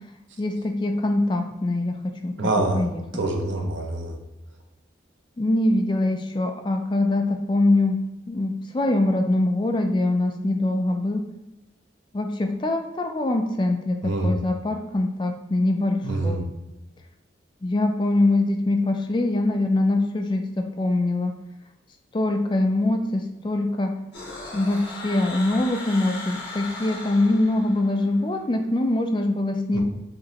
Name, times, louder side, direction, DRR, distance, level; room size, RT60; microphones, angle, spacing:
voice 1, 0.4-2.5 2.7-3.0 5.4-8.0 8.3-11.2 12.1-16.4 17.6-21.3 22.1-23.9 24.5-29.8, left 2 dB, 25° left, 4 dB, 0.3 m, -23 dB
voice 2, 2.4-2.8 3.1-4.2 14.0-14.4 16.0-16.4 29.7-29.8, right 2 dB, 85° right, 2 dB, 0.8 m, -25 dB
sound 1, 24.1-28.1, left 2 dB, 70° left, 1.3 m, -37 dB
5.1 x 2.9 x 2.8 m, 0.96 s
head